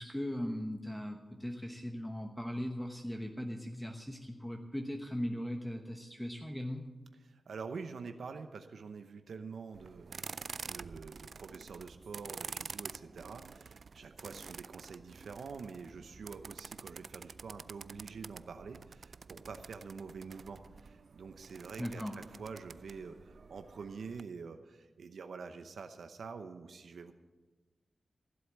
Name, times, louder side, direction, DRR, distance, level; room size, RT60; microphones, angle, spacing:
voice 1, 0.0-6.9 21.8-22.1, equal, 5° left, 3 dB, 1.1 m, -39 dB
voice 2, 7.2-27.1, right 5 dB, 90° right, 8 dB, 0.8 m, -46 dB
sound 1, 9.7-24.2, right 5 dB, 65° right, 0.3 m, -48 dB
15.5 x 7.9 x 7.3 m, 1.2 s
wide cardioid pair, 75°, 0 cm